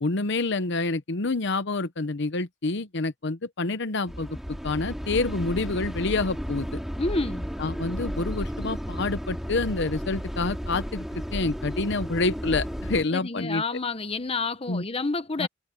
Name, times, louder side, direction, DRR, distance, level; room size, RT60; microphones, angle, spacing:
voice 1, 0.0-4.4 4.6-6.8 7.6-13.6 14.7-14.8 15.4-15.5, left 3 dB, 65° left, 0.9 m, -28 dB
sound 1, 4.1-13.0, equal, ahead, 2.9 m, -33 dB
voice 2, 7.0-7.5 13.1-15.5, left 3 dB, 30° left, 1.1 m, -29 dB
head